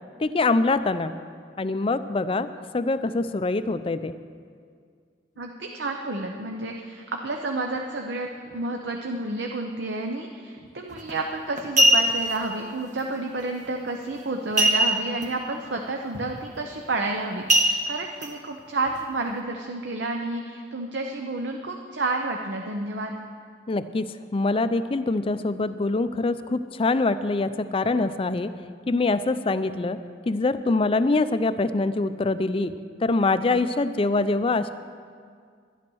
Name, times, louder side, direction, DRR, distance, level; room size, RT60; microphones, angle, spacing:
voice 1, 0.2-1.2 1.6-2.5 2.7-4.1 23.7-28.5 28.9-30.0 30.3-32.7 33.0-34.7, left 3 dB, 30° left, 12 dB, 0.4 m, -24 dB
voice 2, 5.4-23.2, right 2 dB, 65° right, 3 dB, 0.8 m, -30 dB
sound 1, 10.9-11.1 11.6-12.4 14.6-15.2 15.6-15.7 16.1-16.4 17.5-18.3 18.9-19.0, right 1 dB, 45° right, 1.2 m, -20 dB
11.5 x 11.0 x 6.2 m, 2.1 s
head